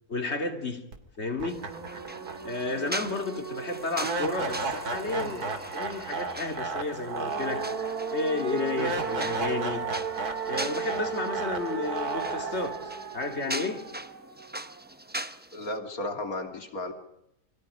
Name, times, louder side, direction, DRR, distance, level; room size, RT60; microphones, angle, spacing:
voice 1, 0.1-0.8 1.2-1.6 2.4-7.7 8.1-9.9 10.5-12.8 13.1-14.0, left 3 dB, 45° left, 3.0 m, -32 dB
sound 1, 0.9-1.0 1.4-14.5, right 4 dB, 90° right, 2.8 m, -33 dB
sound 2, 1.5-15.8, right 1 dB, 10° right, 0.7 m, -41 dB
Human voice, 5.0-6.9, right 1 dB, 60° right, 7.5 m, -45 dB
voice 2, 15.5-16.9, left 2 dB, 70° left, 3.3 m, -34 dB
28.0 x 24.0 x 5.0 m
omnidirectional pair, 1.6 m